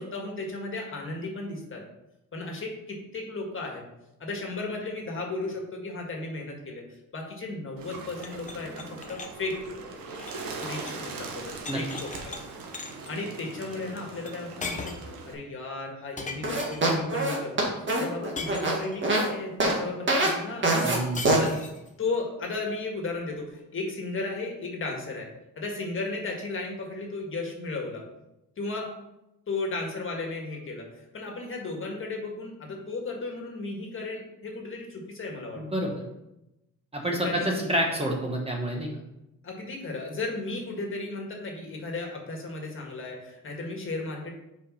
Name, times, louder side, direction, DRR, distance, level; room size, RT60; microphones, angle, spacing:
voice 1, 0.0-1.8 2.3-3.8 4.2-6.9 7.1-9.6 10.6-12.3 13.1-17.7 18.0-20.7 21.3-21.5 22.0-25.3 25.5-28.0 28.6-28.9 29.5-35.6 37.2-37.7 39.4-44.3, left 3 dB, 35° left, 1 dB, 1.8 m, -35 dB
Bird, 7.8-15.3, right 4 dB, 80° right, 1.4 m, -40 dB
sound 1, 8.2-11.1 11.3-12.4 12.7-13.1 14.3-14.4 14.6-15.2 16.2-17.0 18.4-19.2 21.1-21.9, left 3 dB, 20° left, 0.9 m, -39 dB
sound 2, 16.4-19.3 19.6-19.8 20.1-20.3 20.6-21.0 21.3-21.4, right 2 dB, 35° right, 1.8 m, -24 dB
voice 2, 20.8-21.4 35.6-35.9 36.9-38.9, right 1 dB, 15° right, -1 dB, 1.2 m, -28 dB
5.5 x 5.1 x 5.5 m, 0.91 s
cardioid pair, 130°, 34 cm